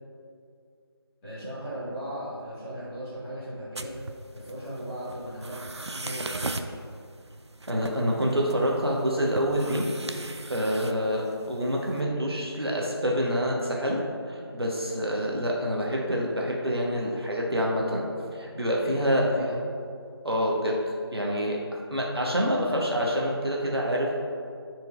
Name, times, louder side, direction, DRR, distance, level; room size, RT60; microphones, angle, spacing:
voice 1, 1.2-3.9 4.3-6.8 19.1-19.5, equal, 5° left, -19 dB, 1.2 m, -37 dB
sound 1, 3.7-12.0, right 2 dB, 90° right, 0.5 m, -39 dB
voice 2, 7.7-9.8 10.5-14.0 14.3-18.0 18.3-19.6 20.2-20.8 21.1-21.6 21.9-24.1, equal, 65° right, -2 dB, 1.2 m, -27 dB
10.5 x 4.6 x 2.5 m, 2.3 s
figure-of-eight pair, 165°, 14 cm